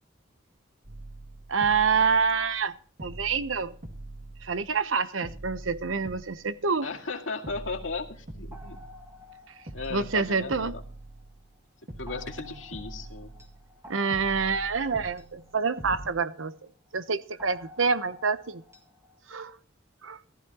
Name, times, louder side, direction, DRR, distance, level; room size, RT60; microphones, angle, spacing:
sound 1, 0.8-2.7 3.0-4.9 5.2-7.1 7.4-9.4 9.7-11.6 11.9-13.8 14.1-16.1, right 1 dB, 55° right, 2.3 m, -44 dB
voice 1, 1.5-2.7 3.0-3.7 4.4-6.9 9.9-10.8 13.9-18.6 19.3-19.6 20.0-20.2, right 5 dB, 85° right, 0.9 m, -27 dB
voice 2, 6.8-8.8 9.7-10.8 12.0-13.3, left 4 dB, 80° left, 2.1 m, -36 dB
sound 2, 8.5-11.3 12.1-16.6 17.4-19.2, left 2 dB, 15° right, 2.0 m, -52 dB
15.0 x 14.5 x 2.9 m
head